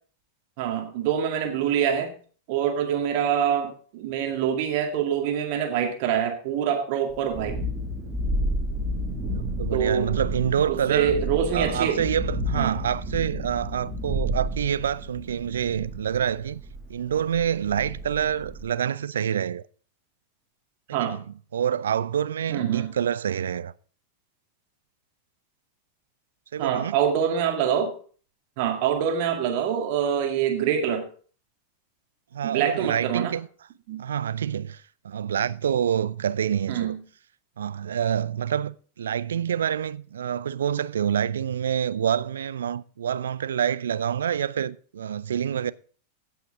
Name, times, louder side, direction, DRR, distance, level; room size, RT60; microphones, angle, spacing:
voice 1, 0.6-2.1 2.5-7.6 9.7-10.1 10.7-12.0 12.6-12.8 20.9-21.2 22.5-22.9 26.6-27.9 28.6-31.1 32.4-33.3 33.9-34.0 36.7-37.0, right 8 dB, 45° right, 2.0 m, -25 dB
Thunderstorm, 7.1-18.7, equal, 15° right, 2.3 m, -31 dB
voice 2, 9.3-11.2 11.5-16.6 16.9-19.6 21.0-21.3 21.5-23.7 26.5-27.0 32.3-33.5 34.0-37.0 37.6-45.7, right 9 dB, 65° right, 0.4 m, -27 dB
16.0 x 5.8 x 3.6 m
figure-of-eight pair, 90°, 0 cm